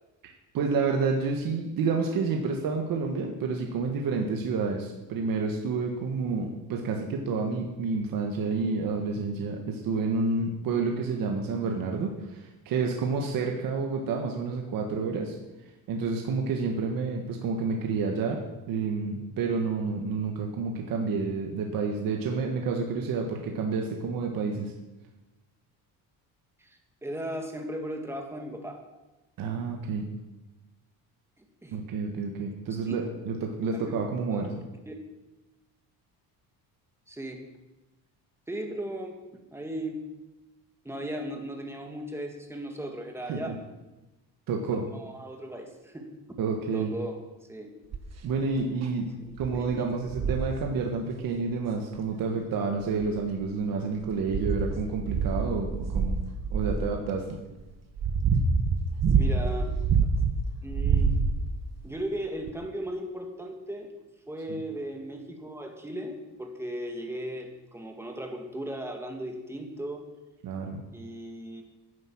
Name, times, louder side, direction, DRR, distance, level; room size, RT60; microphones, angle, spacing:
voice 1, 0.5-15.4 15.9-24.7 29.4-30.1 31.7-34.6 43.3-43.6 44.5-44.9 46.4-46.9 48.2-49.1 49.4-56.2 56.5-57.4 64.5-64.6 70.4-70.8, right 4 dB, 65° right, 2 dB, 1.7 m, -29 dB
voice 2, 26.6-28.8 31.4-31.8 32.9-33.0 33.7-33.9 34.3-34.5 34.9-35.0 37.1-37.4 38.5-39.2 39.5-40.0 40.8-43.6 44.7-46.1 46.7-47.2 47.5-47.7 49.2-49.8 59.1-59.7 60.6-61.1 61.8-63.9 64.3-70.0 70.9-71.6, right 1 dB, 5° right, 3 dB, 2.0 m, -37 dB
sound 1, 47.9-48.2 48.8-48.9 49.4-49.6 50.1-50.5 51.9-52.0 52.8-53.5 54.0-56.9 57.6-60.4 60.7-61.6 62.5-62.6, right 5 dB, 45° right, 1.5 m, -26 dB
11.0 x 10.0 x 7.3 m, 1.1 s
cardioid pair, 135°, 37 cm